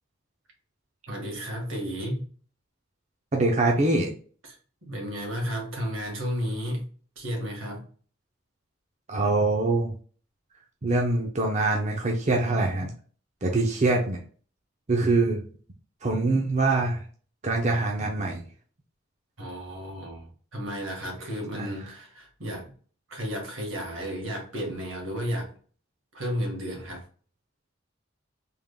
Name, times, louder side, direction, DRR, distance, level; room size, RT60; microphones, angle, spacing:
voice 1, 1.1-2.3 4.8-6.9 7.2-7.8 19.4-22.7 23.1-25.5 26.1-27.0, equal, 85° right, 0 dB, 1.8 m, -33 dB
voice 2, 3.3-4.1 9.1-9.9 10.8-12.9 13.4-14.2 14.9-15.4 16.0-17.0 17.4-18.5 21.5-21.7, right 2 dB, 35° right, 1 dB, 0.6 m, -24 dB
3.6 x 3.5 x 2.3 m, 0.42 s
head